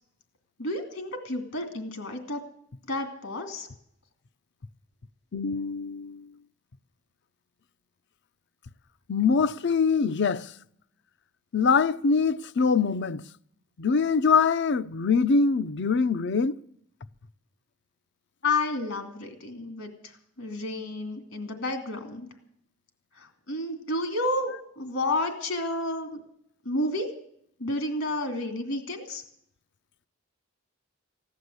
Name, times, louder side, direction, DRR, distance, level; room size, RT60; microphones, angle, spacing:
voice 1, 0.6-2.4 2.9-3.7 18.4-22.3 23.1-26.2 26.6-27.1 27.6-29.2, left 2 dB, 70° left, 2.7 m, -31 dB
voice 2, 5.3-6.3 9.1-10.5 11.5-13.2 13.8-16.6, left 5 dB, 55° left, 0.6 m, -24 dB
15.5 x 11.5 x 7.9 m
head